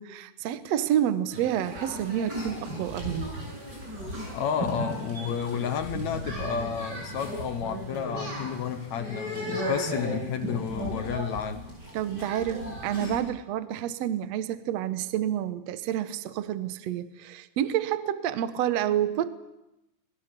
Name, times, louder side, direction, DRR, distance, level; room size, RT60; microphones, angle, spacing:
voice 1, 0.0-3.2 11.9-19.3, right 11 dB, 80° right, 1.5 m, -29 dB
sound 1, 1.3-13.2, equal, 25° right, 7.8 m, -35 dB
voice 2, 4.3-11.7, left 8 dB, 70° left, 1.7 m, -31 dB
27.0 x 21.0 x 6.8 m
omnidirectional pair, 4.5 m